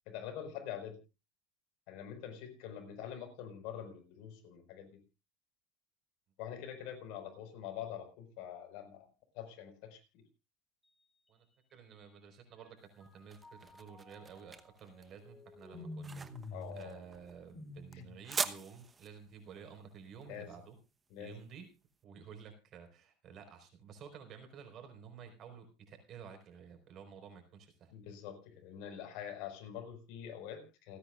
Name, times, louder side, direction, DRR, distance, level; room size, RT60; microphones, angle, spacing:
voice 1, 0.1-1.0 1.9-5.0 6.4-9.1 9.3-10.2 16.5-17.0 17.9-18.0 20.3-20.5 21.1-21.3 27.9-31.0, left 9 dB, 65° left, 5 dB, 4.9 m, -45 dB
Mallet percussion, 10.8-12.2 12.6-18.0, left 2 dB, 5° left, 4.0 m, -62 dB
voice 2, 11.7-16.3 16.7-20.8 21.2-21.7 22.0-27.9, right 7 dB, 45° right, 5 dB, 4.7 m, -52 dB
sound 1, 12.8-21.8, right 4 dB, 20° right, 1.0 m, -44 dB
sound 2, 15.7-16.9 17.1-18.2, left 1 dB, 25° left, 4.0 m, -46 dB
29.0 x 9.8 x 2.5 m, 0.28 s
supercardioid pair, 115°, 0 cm